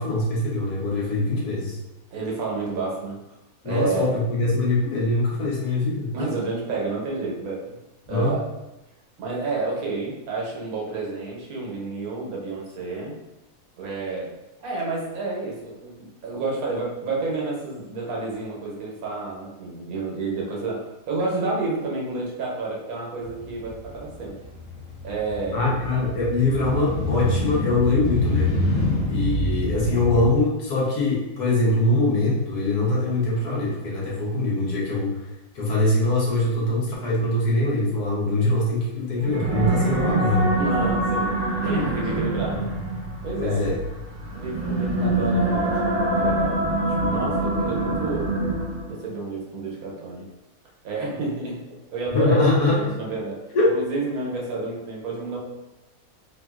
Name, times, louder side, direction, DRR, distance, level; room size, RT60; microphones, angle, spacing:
voice 1, 0.0-1.8 3.6-6.1 8.1-8.4 25.5-28.5 29.1-35.3 35.5-40.5 43.4-43.8 52.1-53.0 53.5-53.7, left 2 dB, 90° left, -5 dB, 1.5 m, -23 dB
voice 2, 2.1-3.2 3.6-4.1 6.1-7.8 8.1-8.4 9.2-13.1 13.8-14.3 14.6-15.9 16.2-24.4 25.0-25.7 28.8-28.9 40.6-41.3 41.6-42.7 43.2-43.7 44.3-46.6 47.1-48.4 48.9-50.3 50.8-51.6 51.9-53.4 53.7-55.4, right 3 dB, 75° right, -3 dB, 1.3 m, -30 dB
Motorcycle, 23.2-30.3, left 1 dB, 60° left, 1.4 m, -27 dB
sound 1, 39.2-49.0, right 2 dB, 55° right, 1.0 m, -25 dB
3.6 x 2.4 x 2.3 m, 0.95 s
omnidirectional pair, 1.6 m